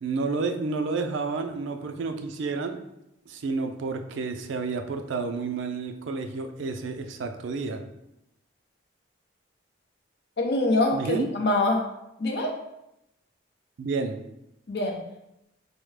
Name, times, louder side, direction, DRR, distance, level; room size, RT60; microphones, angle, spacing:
voice 1, 0.0-2.8 3.3-7.8 10.9-11.3 13.8-14.2, right 4 dB, 75° right, 6 dB, 0.4 m, -30 dB
voice 2, 10.4-11.8 12.2-12.5 14.7-15.0, left 2 dB, 55° left, 1 dB, 0.6 m, -24 dB
4.6 x 2.1 x 3.2 m, 0.86 s
head